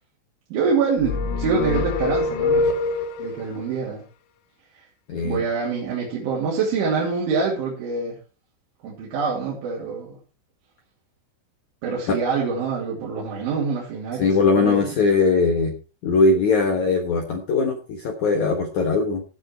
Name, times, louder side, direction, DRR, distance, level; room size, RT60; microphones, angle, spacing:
voice 1, 0.5-2.8 3.2-4.0 4.7-4.9 5.2-8.2 8.8-10.2 11.8-15.0, right 5 dB, 75° right, -5 dB, 5.3 m, -25 dB
sound 1, 1.0-3.4, left 3 dB, 70° left, 2.6 m, -24 dB
voice 2, 5.1-5.4 12.1-12.2 14.2-15.7 16.0-19.2, left 4 dB, 85° left, 3 dB, 1.6 m, -20 dB
17.0 x 6.6 x 4.5 m, 0.34 s
omnidirectional pair, 5.6 m